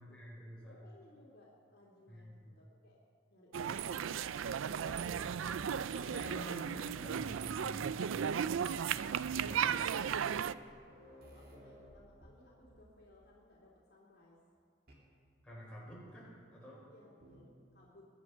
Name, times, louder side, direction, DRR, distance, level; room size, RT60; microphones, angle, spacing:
voice 1, 0.0-0.8 2.1-2.5 5.9-8.8 9.1-10.2 15.4-16.8, equal, 5° left, -6 dB, 5.0 m, -50 dB
voice 2, 0.6-3.0 3.3-5.0 9.5-14.4 16.9-18.1, left 1 dB, 55° left, -5 dB, 2.8 m, -63 dB
sound 1, 3.5-10.5, right 8 dB, 85° right, 0.4 m, -35 dB
sound 2, 4.3-6.6 6.9-8.2 8.5-8.6 8.8-12.9 13.2-13.5 14.9-15.1 15.9-16.3 17.2-17.6, equal, 50° right, 2.4 m, -56 dB
21.5 x 9.4 x 5.7 m, 2.2 s
head